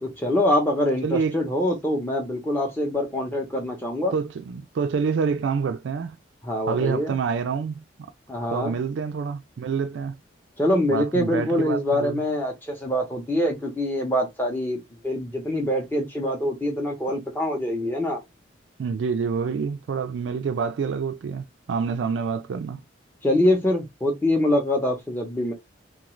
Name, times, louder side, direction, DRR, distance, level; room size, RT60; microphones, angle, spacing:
voice 1, 0.0-4.1 6.4-7.1 8.3-8.7 10.6-18.2 23.2-25.5, left 1 dB, 10° left, 0.7 m, -24 dB
voice 2, 1.0-1.4 4.1-6.2 6.7-8.1 8.5-10.1 10.9-12.2 18.8-22.8, right 5 dB, 70° right, 0.3 m, -27 dB
2.4 x 2.4 x 3.0 m
head